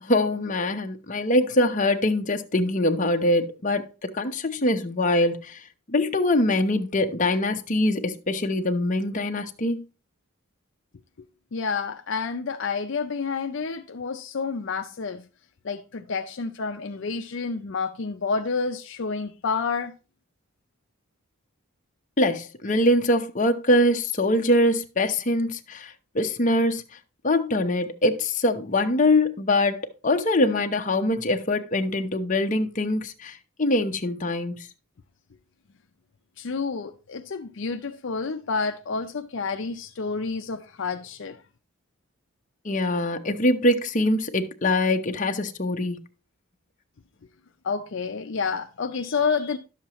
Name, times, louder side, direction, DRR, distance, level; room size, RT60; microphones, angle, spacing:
voice 1, 0.0-5.6 5.9-9.8 22.2-26.8 27.2-34.5 42.6-46.0, left 1 dB, 35° left, 0.8 m, -23 dB
voice 2, 11.5-15.3 15.6-19.9 36.4-41.4 47.6-49.6, left 5 dB, 60° left, 0.5 m, -29 dB
11.5 x 7.2 x 3.0 m
head